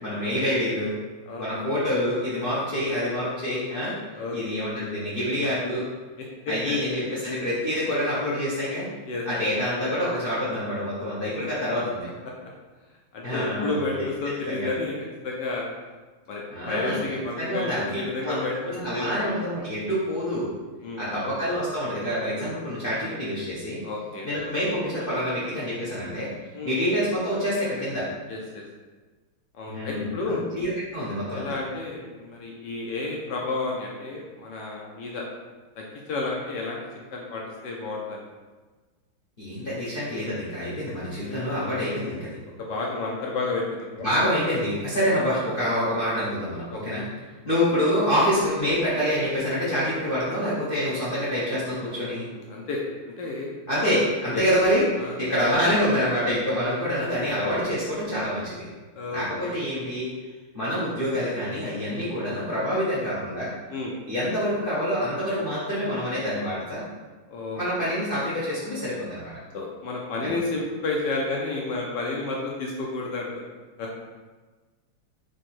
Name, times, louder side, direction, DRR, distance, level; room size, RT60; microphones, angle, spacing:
voice 1, 0.0-1.0 1.4-3.9 4.3-5.9 6.5-8.9 9.3-12.1 13.2-14.1 14.5-14.7 16.5-17.0 17.4-20.5 21.0-23.8 24.2-26.3 26.6-28.1 29.7-31.5 39.4-42.4 44.0-47.0 47.4-52.3 53.7-58.7 59.1-60.1 60.5-63.5 64.1-66.8 67.5-69.3, equal, 60° left, -9 dB, 0.5 m, -26 dB
voice 2, 4.1-4.7 6.2-6.8 9.0-9.2 11.4-11.5 13.1-15.0 15.2-15.7 16.3-17.7 18.0-19.2 20.8-21.2 23.8-24.3 26.5-26.8 28.3-28.6 29.5-30.4 31.3-35.3 35.8-36.8 37.1-38.2 41.2-41.4 42.7-44.1 46.7-46.8 52.0-52.8 53.0-53.5 54.3-54.4 55.0-55.1 58.9-59.6 63.7-64.0 67.3-67.9 69.5-73.4 73.8-73.9, left 3 dB, 75° left, -1 dB, 1.0 m, -31 dB
3.7 x 3.3 x 4.2 m, 1.3 s
omnidirectional pair, 2.4 m